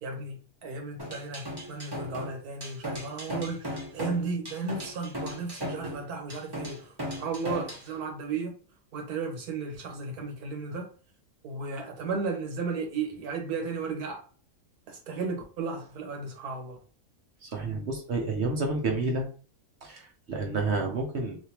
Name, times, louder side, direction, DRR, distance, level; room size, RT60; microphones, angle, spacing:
voice 1, 0.0-8.5 8.9-10.9 11.4-14.2 14.9-16.8, right 4 dB, 80° right, 1.5 m, -34 dB
sound 1, 1.0-7.9, equal, 20° right, 0.8 m, -37 dB
voice 2, 17.4-19.3 19.8-21.4, right 3 dB, 55° right, 0.9 m, -30 dB
3.4 x 2.8 x 2.9 m
omnidirectional pair, 1.6 m